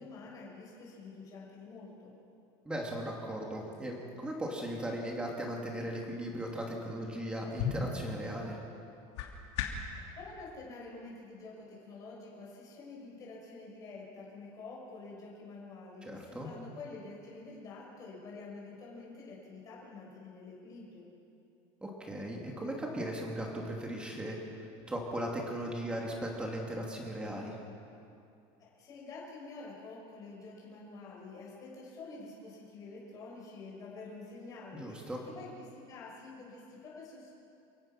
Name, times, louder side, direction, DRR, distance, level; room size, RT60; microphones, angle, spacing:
voice 1, 0.0-2.1 9.9-21.1 28.6-37.4, left 3 dB, 25° left, -4 dB, 5.9 m, -48 dB
voice 2, 2.6-8.6 16.0-16.5 21.8-27.6 34.7-35.2, right 1 dB, 5° right, -1 dB, 2.8 m, -38 dB
sound 1, 7.5-10.0, left 6 dB, 90° left, 3.1 m, -38 dB
28.5 x 16.5 x 6.1 m, 2.6 s
cardioid pair, 175°, 14 cm